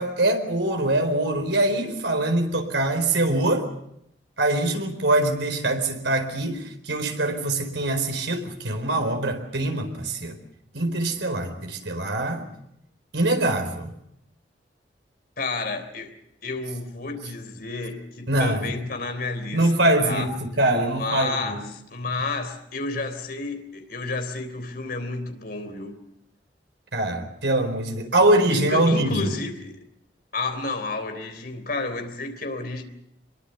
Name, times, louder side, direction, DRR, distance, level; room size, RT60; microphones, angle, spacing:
voice 1, 0.0-3.7 4.4-10.4 10.7-12.4 13.1-13.9 18.3-18.7 19.5-21.6 26.9-29.3, right 1 dB, 90° right, 4.4 m, -23 dB
voice 2, 15.4-16.1 16.4-20.3 20.8-26.0 28.5-29.8 30.3-32.8, left 3 dB, 55° left, 3.5 m, -31 dB
25.0 x 22.0 x 7.0 m
head